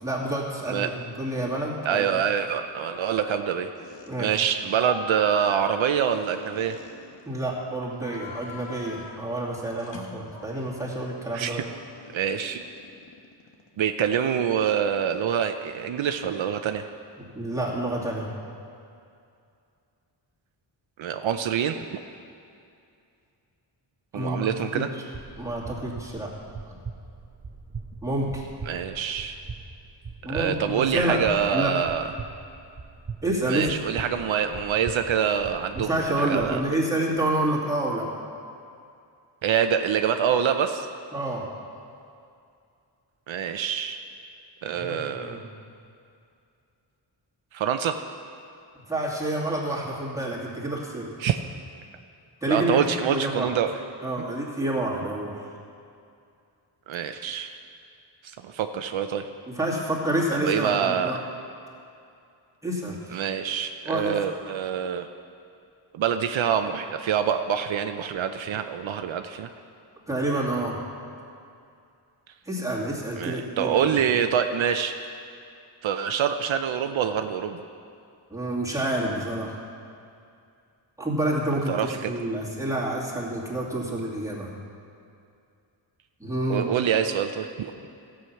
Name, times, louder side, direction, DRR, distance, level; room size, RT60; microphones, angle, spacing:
voice 1, 0.0-2.1 4.1-4.4 7.3-11.6 17.2-18.3 24.1-25.0 25.4-26.3 28.0-28.4 30.2-31.2 31.5-31.8 33.2-33.7 35.7-38.1 41.1-41.5 44.7-45.4 48.9-51.1 52.4-52.8 53.1-53.5 54.0-55.3 59.5-61.2 62.6-63.2 63.9-64.2 70.1-70.8 72.5-73.9 78.3-79.6 81.0-84.6 86.2-86.7, right 1 dB, 5° right, -6 dB, 2.5 m, -28 dB
voice 2, 1.8-3.7 4.2-6.8 11.3-11.6 12.1-12.6 13.8-16.8 21.0-22.0 24.1-24.9 28.7-29.4 30.3-32.1 33.5-36.6 39.4-40.9 43.3-44.0 44.6-45.4 47.5-48.0 51.2-51.4 52.5-53.7 56.9-57.6 58.2-59.3 60.3-61.2 63.1-65.1 65.9-69.5 73.2-75.1 75.8-77.6 81.7-82.1 86.5-87.7, right 8 dB, 75° right, 7 dB, 0.6 m, -26 dB
sound 1, 2.9-3.5 3.8-4.1 4.7-7.5 7.9-9.3 9.8-10.9 12.0-13.8, left 4 dB, 65° left, 1.3 m, -43 dB
sound 2, 25.1-36.6, right 4 dB, 25° right, 0.7 m, -41 dB
14.0 x 7.8 x 5.8 m, 2.5 s
wide cardioid pair, 105°, 47 cm